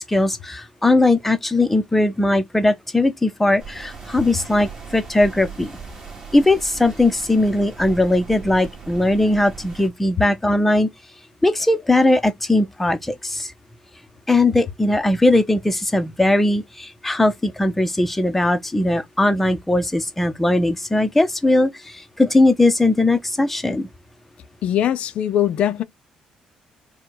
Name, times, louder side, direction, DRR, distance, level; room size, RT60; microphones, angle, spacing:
voice 1, 0.0-5.7 6.3-10.9 11.4-13.5 14.3-23.9, left 2 dB, 10° left, 0.6 m, -19 dB
sound 1, 3.6-9.9, right 5 dB, 30° right, 1.6 m, -38 dB
voice 2, 24.6-25.8, left 10 dB, 65° left, 0.5 m, -21 dB
4.4 x 2.2 x 3.9 m
cardioid pair, 130°, 2 cm